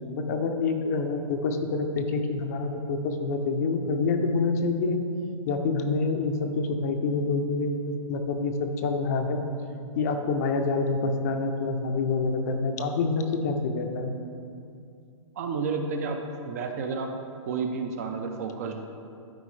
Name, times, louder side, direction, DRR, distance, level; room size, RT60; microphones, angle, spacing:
voice 1, 0.1-5.0 5.5-7.8 8.1-9.4 9.9-14.1, left 3 dB, 30° left, 5 dB, 0.5 m, -27 dB
voice 2, 15.4-17.1 17.4-18.8, right 4 dB, 30° right, 5 dB, 0.4 m, -31 dB
12.0 x 4.9 x 3.2 m, 2.5 s
hypercardioid pair, 165°, 17 cm